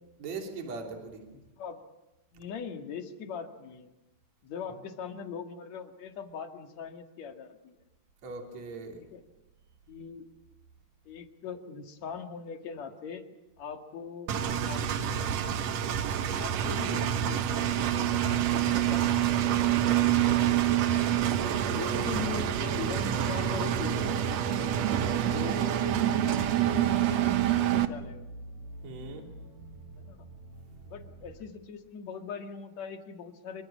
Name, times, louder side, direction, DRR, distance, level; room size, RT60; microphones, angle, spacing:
voice 1, 0.2-1.3 8.2-9.1 21.5-22.0 28.8-29.3, right 3 dB, 45° right, 2 dB, 4.2 m, -40 dB
voice 2, 2.3-3.9 4.4-7.8 9.1-9.2 9.9-10.3 11.1-13.2 13.6-14.3 14.7-15.3 16.4-17.7 18.0-19.5 20.8-20.9 21.6-24.7 25.3-28.3 30.0-30.2 30.9-33.6, left 6 dB, 50° left, 5 dB, 2.8 m, -41 dB
Engine, 14.3-27.9, right 10 dB, 85° right, 1.5 m, -27 dB
sound 1, 16.6-31.3, right 2 dB, 65° right, 8.8 m, -47 dB
27.0 x 25.0 x 7.5 m, 0.97 s
omnidirectional pair, 4.7 m